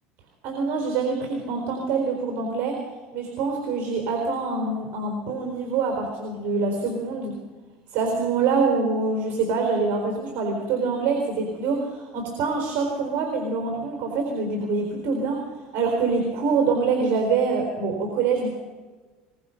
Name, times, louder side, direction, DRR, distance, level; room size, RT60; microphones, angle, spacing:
voice 1, 0.4-2.8 3.1-7.4 7.9-15.4 15.7-18.5, right 4 dB, 55° right, 2 dB, 4.2 m, -25 dB
22.5 x 21.0 x 5.8 m, 1.4 s
cardioid pair, 135°, 4 cm